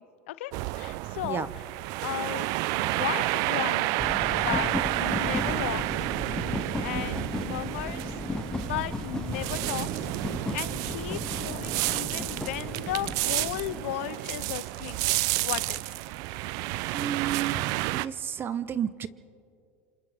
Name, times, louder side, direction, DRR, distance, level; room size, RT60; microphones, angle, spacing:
voice 1, 0.0-1.7 2.0-3.9 4.3-4.7 5.0-6.1 6.8-10.1 10.5-15.0 15.4-15.9, left 15 dB, 75° left, 16 dB, 0.7 m, -35 dB
sound 1, 0.5-18.1, right 19 dB, 60° right, 0.5 m, -30 dB
Steam Train, 4.0-13.8, left 3 dB, 10° left, 0.6 m, -35 dB
voice 2, 16.9-17.7 18.0-19.1, right 9 dB, 30° right, 14 dB, 0.8 m, -31 dB
28.0 x 27.0 x 3.6 m, 2.3 s
supercardioid pair, 105°, 7 cm